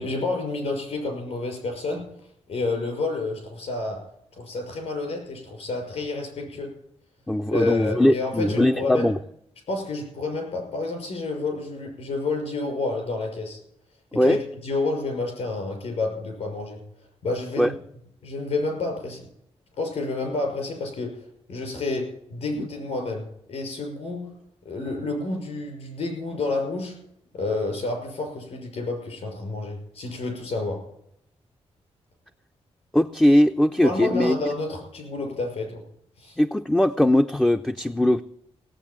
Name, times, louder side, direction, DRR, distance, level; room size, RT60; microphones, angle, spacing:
voice 1, 0.0-2.0 2.5-4.0 4.3-6.7 7.5-9.1 9.7-13.6 14.2-14.4 14.6-16.8 17.2-17.8 18.2-19.3 19.8-21.1 21.5-24.3 24.6-26.9 27.3-30.8 33.8-35.8 36.2-36.4, left 3 dB, 75° left, 3 dB, 6.2 m, -29 dB
voice 2, 7.3-9.2 14.2-14.4 17.6-17.7 22.6-22.7 32.9-34.4 36.4-38.2, left 1 dB, 5° left, 6 dB, 0.4 m, -20 dB
17.0 x 8.5 x 7.3 m, 0.74 s
wide cardioid pair, 145°, 11 cm